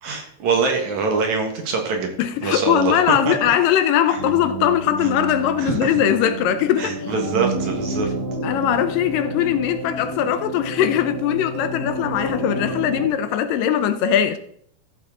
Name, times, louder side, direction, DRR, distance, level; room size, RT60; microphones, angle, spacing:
voice 1, 0.0-2.2 2.4-3.3 4.1-4.2 5.0-5.1 5.6-5.9 6.8-8.1, right 4 dB, 60° right, 2.7 m, -24 dB
voice 2, 2.2-7.0 8.4-14.4, left 10 dB, 80° left, 2.2 m, -20 dB
sound 1, 4.2-13.1, right 2 dB, 25° right, 3.5 m, -30 dB
14.0 x 7.6 x 3.8 m
omnidirectional pair, 4.1 m